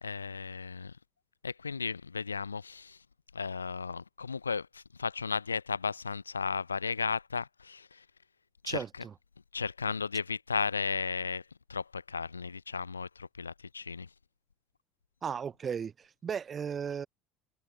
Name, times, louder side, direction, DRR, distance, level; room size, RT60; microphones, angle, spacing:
voice 1, 0.0-0.9 1.4-3.0 3.3-8.0 8.6-8.8 9.5-11.4 11.7-14.1, left 5 dB, 85° left, 0.5 m, -35 dB
voice 2, 8.7-9.1 15.2-17.1, right 7 dB, 35° right, 0.8 m, -36 dB
figure-of-eight pair, 60°, 0 cm